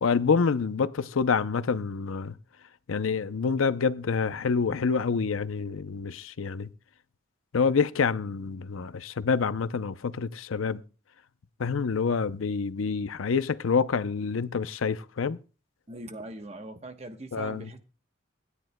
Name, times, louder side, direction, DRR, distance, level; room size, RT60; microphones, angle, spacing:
voice 1, 0.0-2.3 2.9-6.7 7.5-10.8 11.6-15.4 17.3-17.7, left 5 dB, 85° left, 0.6 m, -27 dB
voice 2, 15.9-17.8, right 1 dB, 30° right, 1.0 m, -41 dB
26.0 x 10.0 x 2.2 m
head